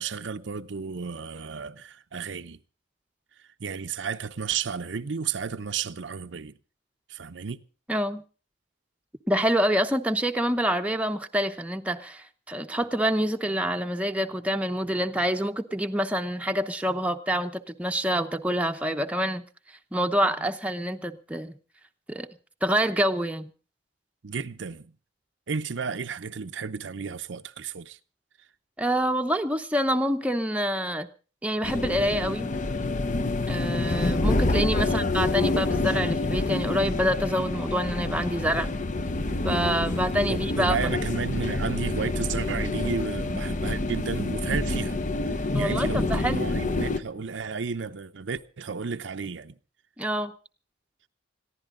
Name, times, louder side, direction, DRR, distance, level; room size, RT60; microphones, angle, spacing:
voice 1, 0.0-2.6 3.6-6.6 7.1-7.6 24.2-24.9 25.5-28.0 34.8-35.0 40.3-49.6, right 5 dB, 80° right, 0.7 m, -33 dB
voice 2, 7.9-8.2 9.3-19.4 19.9-21.5 22.1-22.3 22.6-23.5 28.8-31.1 31.4-32.5 33.5-38.7 39.4-40.9 45.5-46.5 50.0-50.3, equal, 5° right, 0.8 m, -26 dB
sound 1, 31.6-47.0, left 2 dB, 45° left, 0.8 m, -27 dB
sound 2, 39.3-48.0, left 1 dB, 85° left, 4.0 m, -57 dB
21.5 x 15.0 x 3.7 m
head